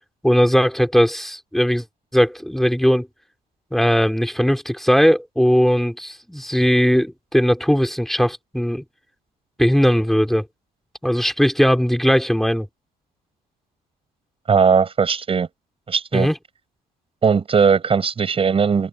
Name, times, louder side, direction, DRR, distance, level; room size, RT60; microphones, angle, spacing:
voice 1, 0.2-1.8 2.1-3.1 3.7-8.8 9.6-10.4 11.0-12.7 16.1-16.3, equal, ahead, 3.0 m, -18 dB
voice 2, 14.5-15.5 15.9-16.3 17.2-18.9, right 6 dB, 35° right, 7.6 m, -18 dB
cardioid pair, 110°, 17 cm